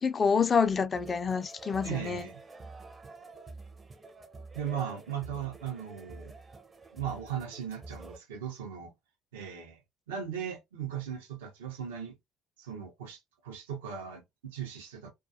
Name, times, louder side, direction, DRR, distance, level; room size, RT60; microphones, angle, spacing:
voice 1, 0.0-2.3, left 5 dB, 40° left, 0.3 m, -27 dB
sound 1, 0.9-8.2, right 3 dB, 30° right, 0.5 m, -48 dB
voice 2, 1.8-2.4 4.5-6.3 6.9-8.9 9.3-9.8 10.1-12.1 12.6-15.1, right 8 dB, 90° right, 0.6 m, -38 dB
2.3 x 2.2 x 2.6 m
hypercardioid pair, 65°, 0 cm